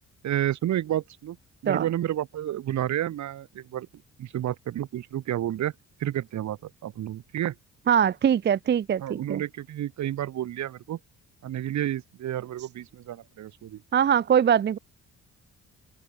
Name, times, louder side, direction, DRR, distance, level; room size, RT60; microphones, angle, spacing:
voice 1, 0.2-1.4 1.6-3.9 4.2-5.7 6.0-7.5 9.0-11.0 11.4-13.8, right 12 dB, 70° right, 1.7 m, -30 dB
voice 2, 7.9-9.4 13.9-14.8, right 8 dB, 35° right, 0.5 m, -22 dB
open air
cardioid pair, 90°, 30 cm